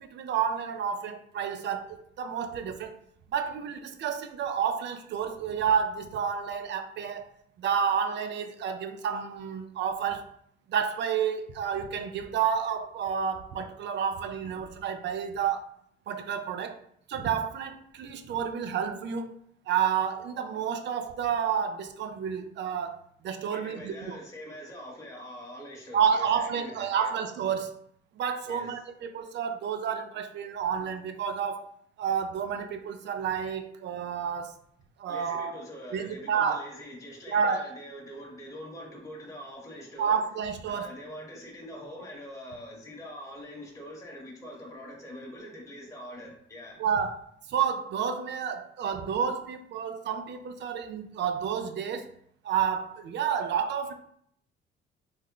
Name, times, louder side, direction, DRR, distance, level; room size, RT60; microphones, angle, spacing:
voice 1, 0.0-3.0 3.3-7.3 7.6-10.3 10.7-15.7 16.1-16.8 17.1-19.4 19.7-24.2 25.9-27.7 28.2-31.7 32.0-34.6 35.0-35.6 35.9-36.6 37.3-37.7 40.0-40.9 46.8-47.2 47.5-52.1 52.4-53.9, right 7 dB, 65° right, 0.5 m, -30 dB
voice 2, 23.5-27.1 28.5-28.7 35.1-40.2 40.7-46.8, equal, 15° left, 1.0 m, -43 dB
3.5 x 2.1 x 3.7 m
cardioid pair, 90°, 20 cm